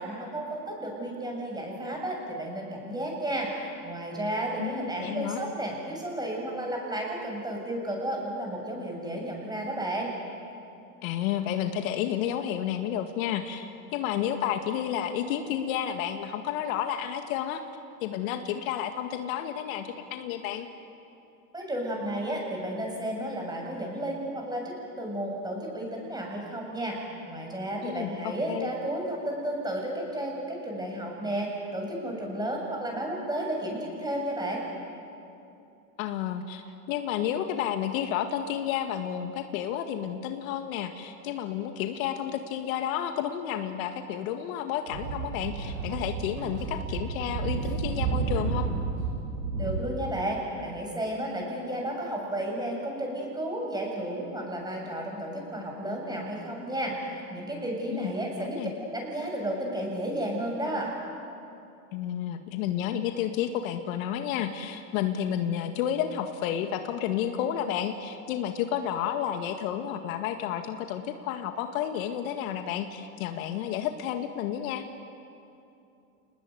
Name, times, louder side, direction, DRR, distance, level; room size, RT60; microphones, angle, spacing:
voice 1, 0.0-3.5 3.8-10.1 21.5-27.0 27.3-34.6 49.6-60.9, right 1 dB, 10° right, 0 dB, 7.5 m, -32 dB
voice 2, 4.6-5.4 11.0-17.6 18.0-20.7 27.8-28.7 36.0-48.7 57.9-58.1 58.4-58.7 61.9-74.9, left 10 dB, 65° left, 6 dB, 2.0 m, -31 dB
Speech / Wind, 44.9-49.8, right 5 dB, 85° right, 7.9 m, -31 dB
29.0 x 19.5 x 9.5 m, 2.7 s
hypercardioid pair, 115°, 45 cm